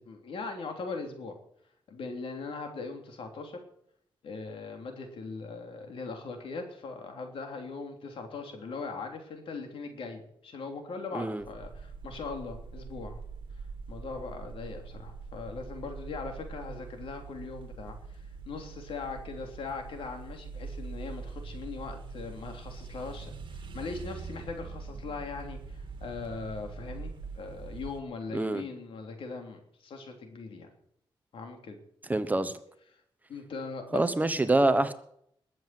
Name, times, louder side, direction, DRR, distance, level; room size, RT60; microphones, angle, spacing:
voice 1, 0.0-1.4 1.9-3.6 4.2-13.2 13.9-30.7 31.3-31.8 33.3-34.0, left 4 dB, 80° left, 4 dB, 3.3 m, -40 dB
sound 1, 11.4-28.0, right 4 dB, 60° right, 2.1 m, -43 dB
voice 2, 28.3-28.6 32.1-32.5 33.9-34.9, right 2 dB, 20° right, 11 dB, 1.0 m, -25 dB
21.0 x 7.8 x 7.7 m, 0.71 s
wide cardioid pair, 120°, 9 cm